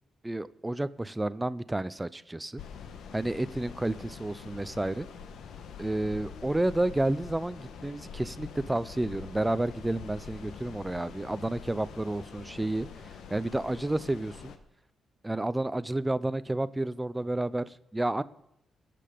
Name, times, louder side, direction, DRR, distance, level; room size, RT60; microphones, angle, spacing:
voice 1, 0.2-2.6 3.1-5.1 5.8-12.9 13.3-14.5 15.2-18.2, right 1 dB, 10° right, 16 dB, 0.4 m, -30 dB
sound 1, 2.6-14.6, left 6 dB, 70° left, 1.1 m, -45 dB
21.5 x 7.7 x 5.0 m, 0.81 s
cardioid pair, 175°, 0 cm